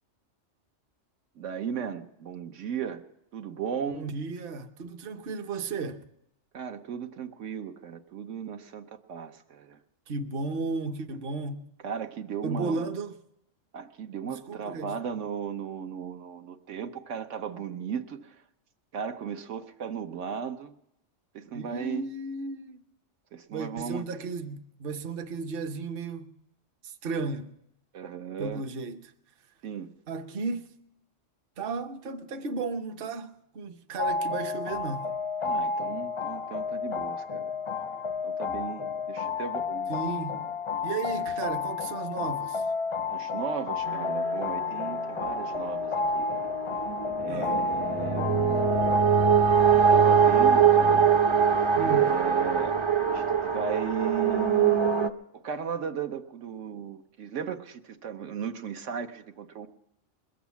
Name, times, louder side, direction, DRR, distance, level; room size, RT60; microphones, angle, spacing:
voice 1, 1.4-3.0 3.3-4.0 6.5-9.8 11.8-12.8 13.7-18.4 18.9-20.7 21.3-22.0 23.3-24.1 27.9-28.6 29.6-29.9 35.4-37.5 38.2-39.9 43.1-46.5 47.2-48.8 49.9-51.1 51.8-54.9 55.3-59.7, right 7 dB, 80° right, 1.1 m, -36 dB
voice 2, 3.9-6.0 10.1-11.6 12.4-13.2 14.2-15.0 21.5-22.8 23.5-26.3 26.8-27.5 28.4-29.1 30.1-30.8 31.6-35.1 39.9-40.4 40.8-42.7 47.3-47.6 51.8-52.1, right 3 dB, 55° right, 1.0 m, -34 dB
sound 1, 34.0-49.0, left 4 dB, 40° left, 0.5 m, -31 dB
sound 2, 43.9-55.1, right 6 dB, 35° right, 0.5 m, -23 dB
21.0 x 8.0 x 7.1 m
omnidirectional pair, 1.2 m